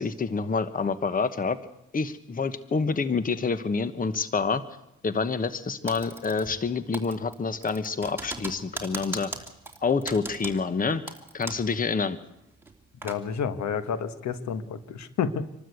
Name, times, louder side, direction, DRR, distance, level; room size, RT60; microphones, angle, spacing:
voice 1, 0.0-1.6 1.9-4.6 5.0-9.3 9.8-11.0 11.3-12.2, left 4 dB, 30° left, 12 dB, 1.2 m, -27 dB
Typing, 5.9-6.7 6.9-11.8 12.0-12.1 12.6-13.2, right 2 dB, 5° right, 2.8 m, -39 dB
voice 2, 13.0-15.5, left 7 dB, 65° left, 11 dB, 1.3 m, -30 dB
25.5 x 12.5 x 8.3 m, 0.88 s
cardioid pair, 90°, 30 cm